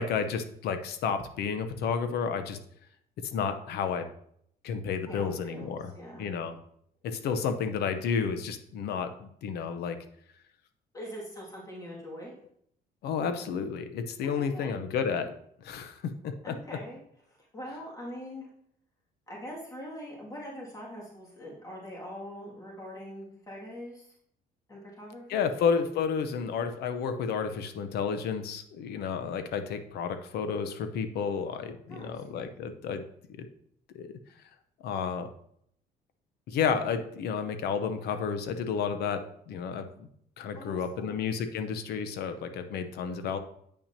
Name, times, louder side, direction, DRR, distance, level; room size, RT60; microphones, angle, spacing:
voice 1, 0.0-2.6 3.3-4.1 4.6-5.9 6.2-6.6 7.0-10.0 13.0-15.3 15.6-16.5 25.3-33.0 33.4-33.5 33.9-34.1 34.8-35.3 36.5-40.1 40.4-43.4, left 6 dB, 75° left, 9 dB, 0.8 m, -31 dB
voice 2, 5.1-6.3 10.9-12.3 14.2-14.8 16.4-17.0 17.3-18.5 19.3-24.1 24.7-25.5 31.9-32.2 40.5-41.2, equal, 20° left, -4 dB, 2.2 m, -43 dB
8.5 x 5.8 x 2.8 m, 0.69 s
cardioid pair, 110°, 17 cm